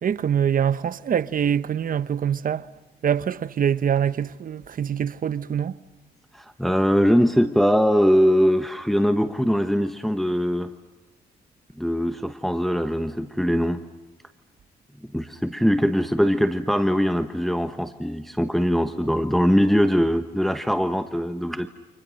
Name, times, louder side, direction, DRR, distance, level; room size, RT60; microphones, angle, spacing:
voice 1, 0.0-2.6 3.0-5.7, right 8 dB, 55° right, 0.9 m, -24 dB
voice 2, 6.3-10.7 11.8-13.8 15.1-21.7, equal, ahead, 1.2 m, -21 dB
30.0 x 26.5 x 6.5 m
cardioid pair, 85°, 17 cm